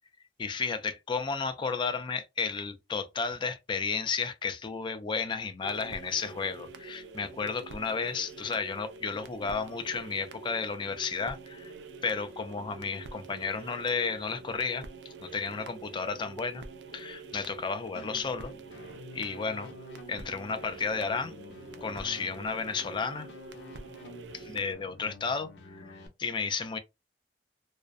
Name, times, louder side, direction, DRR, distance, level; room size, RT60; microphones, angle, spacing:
voice 1, 0.4-11.7 12.0-14.8 15.2-16.6 16.9-18.5 19.1-19.7 20.1-21.4 21.8-23.3 24.3-26.8, left 5 dB, 25° left, 0.3 m, -33 dB
sound 1, 5.6-24.7, right 3 dB, 75° right, 0.4 m, -46 dB
sound 2, 17.9-26.1, left 3 dB, 90° left, 0.5 m, -49 dB
2.4 x 2.1 x 2.4 m
head